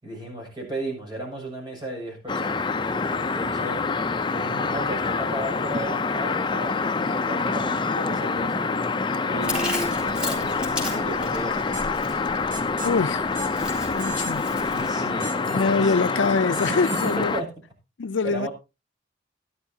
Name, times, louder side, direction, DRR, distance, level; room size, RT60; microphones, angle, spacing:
voice 1, 0.0-3.8 4.3-8.7 9.2-11.9 14.6-16.0 16.7-17.5 18.2-18.5, right 1 dB, 25° right, 6.7 m, -34 dB
sound 1, 2.3-17.4, left 4 dB, 25° left, 0.6 m, -26 dB
voice 2, 9.3-9.8 12.8-13.3 13.6-14.5 15.5-17.3 18.0-18.5, left 4 dB, 80° left, 0.5 m, -25 dB
Chewing mastication, 9.4-14.9, left 2 dB, 5° right, 4.4 m, -35 dB
sound 2, 11.7-11.9 12.5-12.9 13.3-13.5 14.0-14.5 15.2-15.7 16.5-17.2, right 6 dB, 45° right, 1.7 m, -38 dB
16.0 x 12.5 x 2.8 m
head